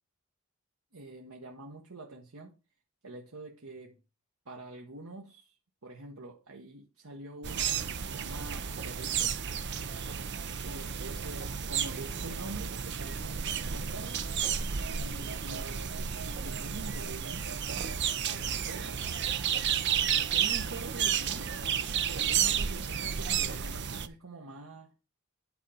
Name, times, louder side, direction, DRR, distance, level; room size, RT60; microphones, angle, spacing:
voice 1, 0.9-2.5 3.0-4.0 4.5-5.6 5.8-9.4 10.6-14.3 14.9-17.7 18.2-19.1 19.9-21.5 22.1-24.9, right 2 dB, 90° right, 1.1 m, -46 dB
sound 1, 7.4-24.1, right 8 dB, 55° right, 0.7 m, -32 dB
9.2 x 4.4 x 5.4 m
head